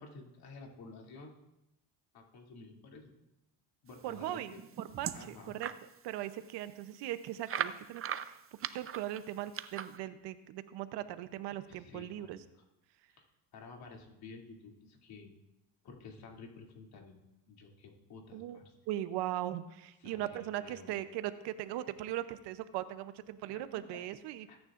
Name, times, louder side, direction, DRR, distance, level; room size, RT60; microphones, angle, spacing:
voice 1, 0.0-1.3 2.1-3.1 3.8-4.6 5.1-5.6 11.7-12.4 13.2-13.3 13.5-15.3 15.8-17.2 17.5-18.7 20.0-20.9 23.9-24.0 24.5-24.6, left 4 dB, 65° left, 0 dB, 2.8 m, -51 dB
voice 2, 4.0-5.7 6.0-8.4 8.7-12.4 18.3-18.6 18.9-24.5, right 13 dB, 85° right, 12 dB, 0.8 m, -39 dB
sound 1, 4.3-5.8 6.3-6.4 6.6-6.7 7.5-10.0, right 9 dB, 35° right, 0.5 m, -39 dB
20.0 x 9.7 x 2.5 m, 0.91 s
cardioid pair, 100°, 40 cm